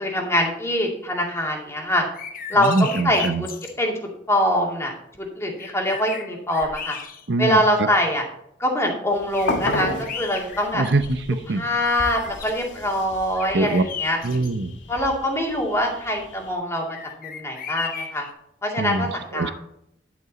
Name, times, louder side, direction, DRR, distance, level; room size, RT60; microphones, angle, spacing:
voice 1, 0.0-2.1 2.5-3.5 3.8-3.9 4.3-4.9 5.2-7.0 7.4-8.2 8.6-10.8 11.5-14.2 14.9-18.2 18.6-19.5, left 1 dB, 15° left, 0 dB, 2.4 m, -23 dB
sound 1, 2.1-3.8 5.1-5.2 5.6-7.5 8.1-8.2 9.3-11.4 11.8-12.6 13.4-14.5 16.9-18.3, left 6 dB, 50° left, 1.0 m, -36 dB
voice 2, 2.6-3.4 7.3-7.6 10.7-11.7 13.5-13.8 14.2-14.8 18.8-19.1 19.3-19.5, right 2 dB, 65° right, 12 dB, 0.8 m, -23 dB
sound 2, 9.1-16.5, left 2 dB, 75° left, 1.5 m, -33 dB
11.0 x 7.3 x 4.1 m, 0.76 s
head